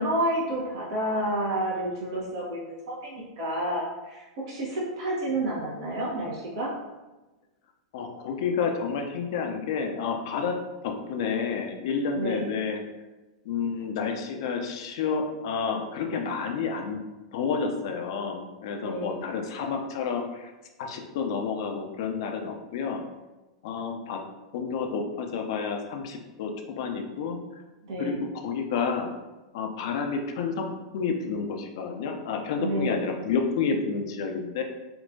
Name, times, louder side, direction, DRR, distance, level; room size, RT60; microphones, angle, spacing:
voice 1, 0.0-6.7 12.1-12.5 18.8-19.2 27.9-28.2 32.6-33.1, right 1 dB, 55° right, -5 dB, 0.9 m, -30 dB
voice 2, 7.9-10.6 10.8-12.8 13.4-17.0 17.3-20.5 20.8-23.0 23.6-24.2 24.5-27.4 28.0-29.1 29.5-30.7 30.9-34.6, left 5 dB, 55° left, 3 dB, 0.5 m, -30 dB
3.6 x 2.3 x 2.6 m, 1.1 s
figure-of-eight pair, 95°, 3 cm